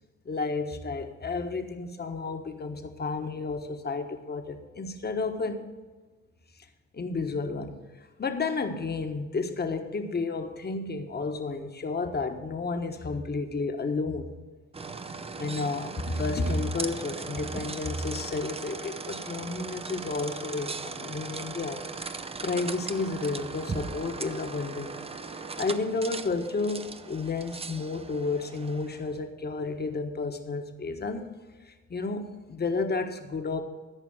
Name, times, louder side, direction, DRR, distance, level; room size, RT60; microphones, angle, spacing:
voice 1, 0.2-5.6 6.9-7.8 8.2-14.3 15.4-21.8 22.4-24.9 25.6-31.3 31.7-33.6, left 3 dB, 35° left, 6 dB, 1.3 m, -31 dB
sound 1, 14.7-29.2, right 4 dB, 20° right, 0.6 m, -38 dB
13.5 x 5.1 x 7.9 m, 1.3 s
cardioid pair, 90°, 30 cm